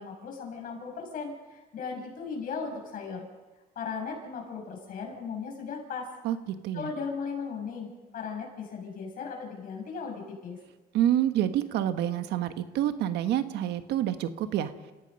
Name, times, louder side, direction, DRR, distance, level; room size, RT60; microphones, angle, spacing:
voice 1, 0.0-3.3 3.8-6.1 6.7-10.6, left 5 dB, 55° left, 1 dB, 7.1 m, -37 dB
voice 2, 10.9-14.7, right 11 dB, 85° right, 10 dB, 1.4 m, -27 dB
29.5 x 16.5 x 5.4 m, 1.2 s
cardioid pair, 110°, 17 cm